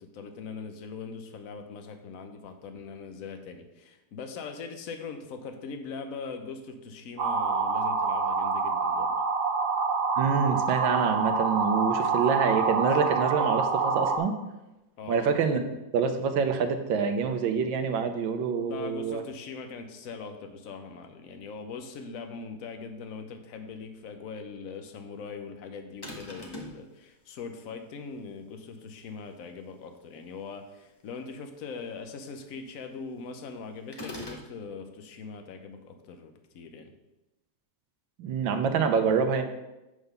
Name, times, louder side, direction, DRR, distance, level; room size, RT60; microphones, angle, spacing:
voice 1, 0.0-9.2 15.0-15.3 18.7-36.9, left 5 dB, 55° left, 6 dB, 1.0 m, -41 dB
sound 1, 7.2-14.2, right 4 dB, 55° right, 1.4 m, -26 dB
voice 2, 10.2-14.3 15.1-15.6 15.9-19.2 38.2-39.4, right 6 dB, 75° right, 7 dB, 1.5 m, -26 dB
sound 2, 26.0-26.8 33.9-34.5, left 1 dB, 20° left, 0.8 m, -40 dB
8.2 x 3.8 x 6.6 m, 0.98 s
omnidirectional pair, 2.2 m